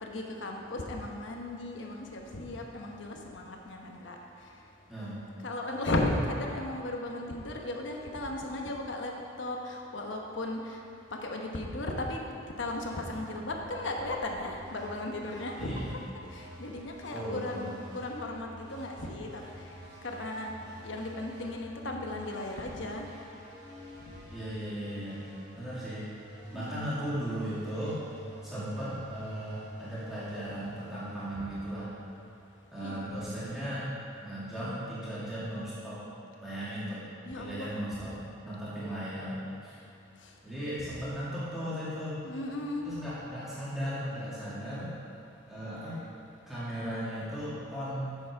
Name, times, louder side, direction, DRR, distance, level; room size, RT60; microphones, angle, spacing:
voice 1, 0.0-4.2 5.4-9.1 9.4-10.6 11.2-12.2 12.6-15.8 16.3-19.4 20.0-20.5 20.8-23.1 26.5-27.0 32.8-33.0 37.2-37.7 42.2-42.9, left 1 dB, 65° left, 1 dB, 1.0 m, -35 dB
voice 2, 4.9-5.2 15.6-15.9 17.1-17.7 24.3-25.2 25.5-26.1 26.5-28.0 28.4-31.9 32.7-36.0 36.4-37.0 37.4-38.1 38.4-39.8 40.4-42.2 42.8-45.0 45.5-46.0 46.5-48.1, equal, ahead, -12 dB, 2.1 m, -36 dB
sound 1, 12.6-32.2, right 1 dB, 55° right, 2.2 m, -49 dB
8.1 x 7.1 x 4.7 m, 2.5 s
head